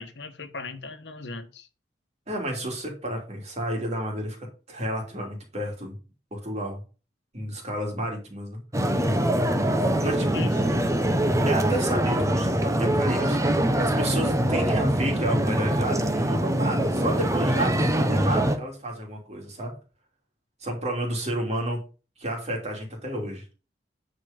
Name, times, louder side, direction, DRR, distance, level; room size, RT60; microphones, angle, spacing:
voice 1, 0.0-1.7 10.3-10.9, left 3 dB, 80° left, 1.3 m, -38 dB
voice 2, 2.3-6.0 6.3-6.8 7.3-9.1 10.0-10.5 11.4-19.8 20.6-21.8 22.2-23.4, right 1 dB, 40° right, 3.2 m, -31 dB
sound 1, 8.7-18.6, right 1 dB, 20° right, 1.0 m, -23 dB
9.4 x 4.9 x 5.3 m
head